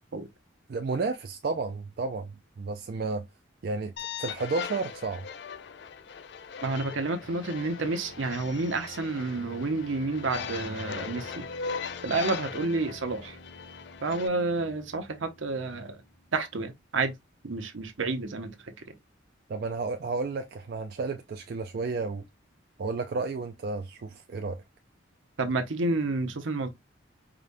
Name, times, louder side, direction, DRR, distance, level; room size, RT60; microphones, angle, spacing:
voice 1, 0.7-3.3 3.6-3.9 4.2-5.3 19.5-22.2 22.8-24.6, right 3 dB, 50° right, 0.3 m, -32 dB
sound 1, 4.0-14.3, left 6 dB, 55° left, 0.4 m, -39 dB
voice 2, 6.6-11.4 12.0-13.4 14.0-16.0 16.3-17.1 17.4-18.5 25.4-26.7, right 3 dB, 75° right, 0.7 m, -30 dB
sound 2, 7.2-16.8, left 1 dB, 85° left, 1.2 m, -51 dB
4.9 x 2.2 x 2.5 m
head